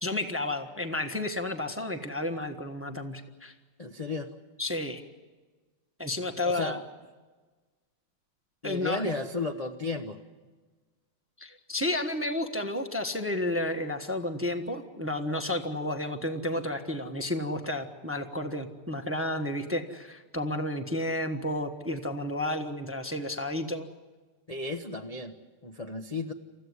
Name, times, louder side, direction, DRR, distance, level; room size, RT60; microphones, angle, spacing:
voice 1, 0.0-3.5 4.6-5.0 6.0-6.8 8.6-9.0 11.4-23.9, left 1 dB, 10° right, 6 dB, 0.9 m, -31 dB
voice 2, 3.8-4.3 6.4-6.8 8.6-10.2 24.5-25.3 25.6-26.3, left 3 dB, 30° left, 2 dB, 0.6 m, -33 dB
28.5 x 15.0 x 9.6 m, 1.3 s
omnidirectional pair, 2.3 m